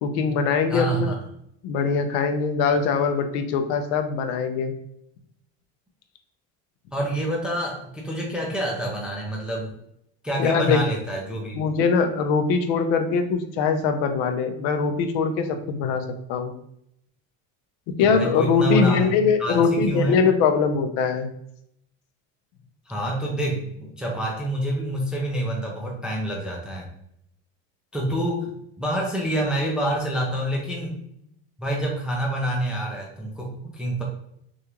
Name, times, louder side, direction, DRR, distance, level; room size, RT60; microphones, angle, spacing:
voice 1, 0.0-1.1 1.6-4.7 10.4-10.8 11.6-16.0 16.3-16.5 18.0-21.3, left 5 dB, 65° left, 7 dB, 0.7 m, -22 dB
voice 2, 0.7-1.2 6.9-9.7 10.2-11.6 18.0-19.1 19.4-20.2 22.9-26.9 27.9-31.0 31.6-34.0, right 1 dB, 5° right, -2 dB, 0.3 m, -27 dB
6.3 x 2.4 x 3.0 m, 0.75 s
cardioid pair, 170°, 32 cm